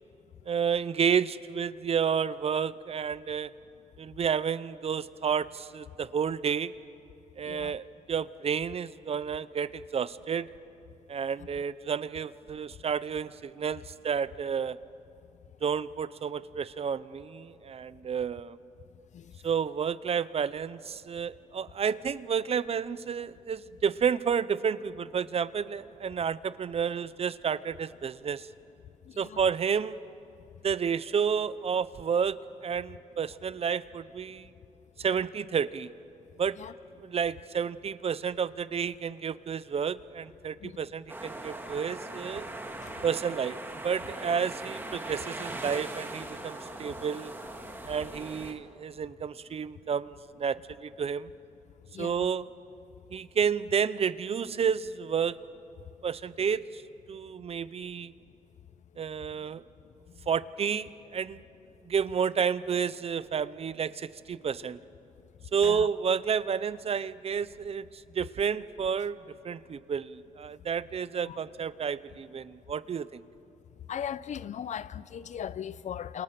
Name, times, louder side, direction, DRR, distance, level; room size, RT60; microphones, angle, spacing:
voice 1, 0.5-3.5 4.0-6.7 7.4-10.5 11.1-14.8 15.6-18.6 19.4-28.5 29.2-30.0 30.6-34.5 35.0-35.9 36.4-36.6 37.0-42.5 43.0-43.6 43.8-47.3 47.9-51.3 52.0-52.4 53.1-55.4 56.0-56.8 57.1-58.1 59.0-59.6 60.3-61.4 61.9-64.8 65.5-73.2, right 7 dB, 45° right, 0.7 m, -30 dB
sound 1, 41.1-48.5, right 2 dB, 15° right, 2.1 m, -40 dB
voice 2, 51.9-52.3 65.6-65.9 71.2-71.4 73.9-76.2, left 9 dB, 60° left, 0.6 m, -38 dB
29.0 x 28.0 x 5.9 m
cardioid pair, 115°, 14 cm